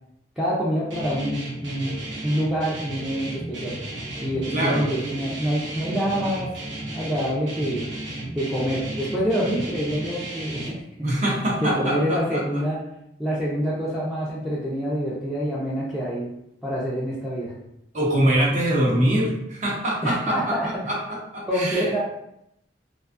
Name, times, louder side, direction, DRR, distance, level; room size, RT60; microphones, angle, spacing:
voice 1, 0.4-1.9 2.2-3.8 4.2-6.5 6.9-7.9 8.3-10.8 11.6-12.8 13.2-16.3 16.6-17.5 20.0-20.9 21.5-22.0, equal, 5° right, -7 dB, 0.4 m, -26 dB
Guitar, 0.9-10.7, right 1 dB, 75° right, 0.7 m, -34 dB
voice 2, 4.5-4.9 11.0-12.4 17.9-20.5 20.9-21.0 21.3-21.9, right 1 dB, 40° right, -3 dB, 0.7 m, -23 dB
2.5 x 2.3 x 2.4 m, 0.79 s
head